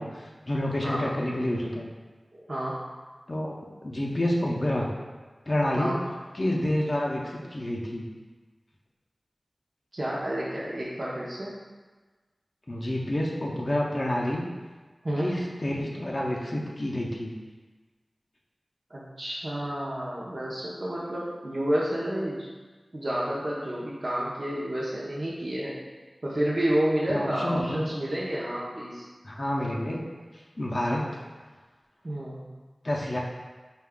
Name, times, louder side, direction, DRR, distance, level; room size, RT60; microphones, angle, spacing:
voice 1, 0.0-1.9 3.3-3.5 3.8-4.9 5.5-6.0 6.3-8.0 12.7-14.5 15.2-17.3 27.1-27.9 29.2-30.0 30.3-31.1 32.8-33.2, left 1 dB, 45° left, -2 dB, 0.5 m, -28 dB
voice 2, 2.3-2.8 5.8-6.0 9.9-11.6 15.0-15.3 18.9-22.5 22.9-25.8 26.2-29.0 32.0-32.5, right 1 dB, 50° right, -7 dB, 0.5 m, -30 dB
4.6 x 2.2 x 3.5 m, 1.3 s
wide cardioid pair, 70°, 0 cm